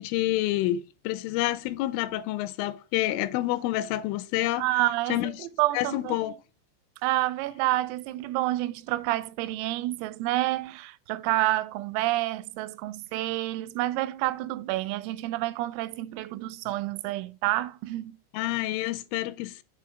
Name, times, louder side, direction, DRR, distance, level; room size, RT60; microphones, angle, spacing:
voice 1, 0.0-4.7 5.1-5.3 5.7-6.4 18.3-19.6, left 15 dB, 85° left, 3.0 m, -28 dB
voice 2, 4.6-6.2 7.0-18.2, right 17 dB, 85° right, 3.2 m, -29 dB
7.6 x 4.0 x 6.2 m
omnidirectional pair, 6.0 m